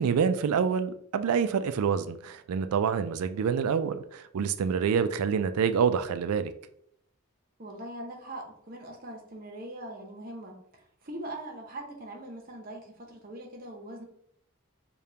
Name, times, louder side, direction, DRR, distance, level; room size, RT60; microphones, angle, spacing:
voice 1, 0.0-6.5, right 6 dB, 85° right, 11 dB, 0.3 m, -27 dB
voice 2, 7.6-14.0, right 1 dB, 40° right, 2 dB, 0.8 m, -42 dB
5.0 x 2.3 x 2.8 m, 0.70 s
head